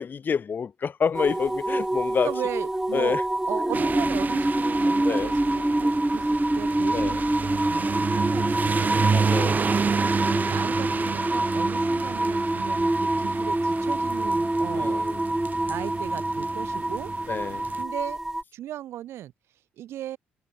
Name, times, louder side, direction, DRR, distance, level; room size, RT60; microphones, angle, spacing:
voice 1, 0.0-2.3 2.9-3.2 5.0-5.3 6.9-7.2 9.1-9.6 14.7-15.2 17.3-17.6, left 6 dB, 45° left, 7.1 m, -28 dB
sound 1, 1.1-18.4, right 1 dB, 10° right, 2.3 m, -26 dB
voice 2, 2.2-3.2 3.5-15.0 15.7-17.1 17.5-18.2 18.5-19.3 19.8-20.2, right 12 dB, 70° right, 5.9 m, -37 dB
sound 2, 3.7-17.8, right 5 dB, 40° right, 2.7 m, -30 dB
supercardioid pair, 65°, 4 cm